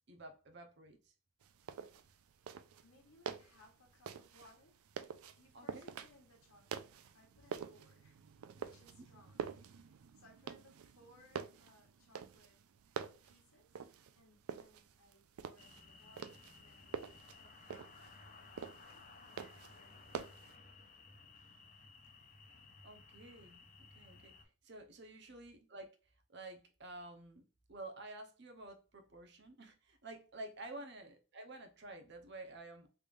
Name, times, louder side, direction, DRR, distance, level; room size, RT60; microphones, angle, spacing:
voice 1, 0.1-1.1 5.5-5.9 22.8-24.3 24.6-25.9 26.3-32.9, right 2 dB, 55° right, 0.8 m, -51 dB
sound 1, 1.4-20.6, right 6 dB, 85° right, 0.4 m, -48 dB
voice 2, 1.7-2.3 2.8-4.8 5.3-6.9 7.1-8.2 8.5-12.6 13.2-13.8 14.1-17.1 17.4-20.4 25.1-25.4 30.7-30.9, left 2 dB, 85° left, 1.3 m, -66 dB
sound 2, 15.6-24.4, left 4 dB, 40° left, 0.6 m, -58 dB
3.5 x 3.2 x 2.4 m
head